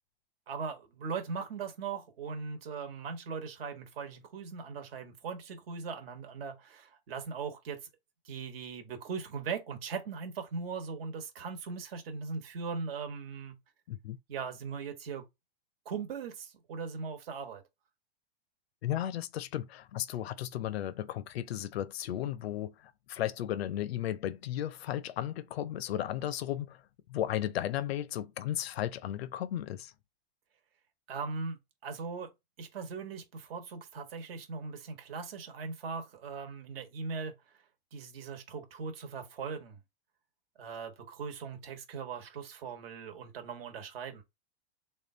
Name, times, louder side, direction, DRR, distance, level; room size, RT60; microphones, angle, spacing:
voice 1, 0.5-7.8 8.2-13.6 14.3-15.2 15.8-17.6 31.1-32.3 32.6-37.4 37.9-39.8 40.6-44.2, right 5 dB, 70° right, 1.2 m, -39 dB
voice 2, 13.9-14.2 18.8-26.8 27.1-29.9, left 12 dB, 85° left, 0.5 m, -35 dB
3.7 x 2.3 x 3.7 m
hypercardioid pair, 130°, 30 cm